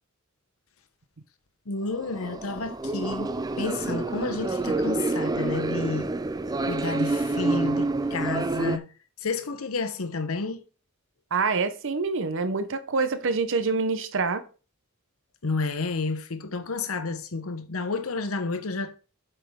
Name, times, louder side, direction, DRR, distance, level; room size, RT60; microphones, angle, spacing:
voice 1, 1.7-3.3 3.6-6.1 6.7-8.9 9.2-10.6 15.4-19.0, left 3 dB, 75° left, 0.9 m, -30 dB
sound 1, 1.9-8.8, right 2 dB, 20° right, 0.4 m, -28 dB
voice 2, 11.3-14.4, right 4 dB, 65° right, 0.8 m, -26 dB
8.3 x 5.5 x 3.7 m
head